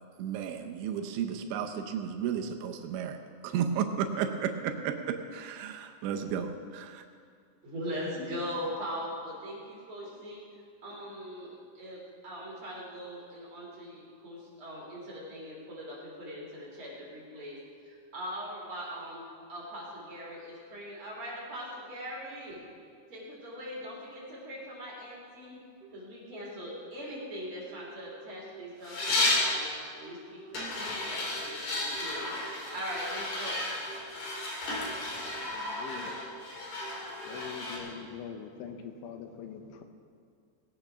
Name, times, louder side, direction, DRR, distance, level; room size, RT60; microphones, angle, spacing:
voice 1, 0.2-7.1, right 8 dB, 80° right, 5 dB, 3.0 m, -33 dB
voice 2, 7.6-10.4 10.8-17.6 17.8-19.2 19.5-22.6 23.1-25.6 25.9-29.7 29.9-32.3 32.7-33.6, equal, 30° right, -5 dB, 4.0 m, -41 dB
sound 1, 25.8-25.9 26.8-26.9 27.8-28.6 29.0-29.6 30.0-30.5 31.0-31.5 31.9-32.5 32.9-33.5 33.9-34.4 34.8-35.4 35.8-36.4 36.8-37.4, right 3 dB, 10° left, 4.3 m, -50 dB
sound 2, 28.8-29.5 30.5-37.8, left 2 dB, 50° left, 3.2 m, -33 dB
voice 3, 35.5-36.2 37.3-39.8, left 7 dB, 85° left, 6 dB, 3.4 m, -43 dB
19.0 x 8.8 x 6.0 m, 2.2 s
omnidirectional pair, 5.3 m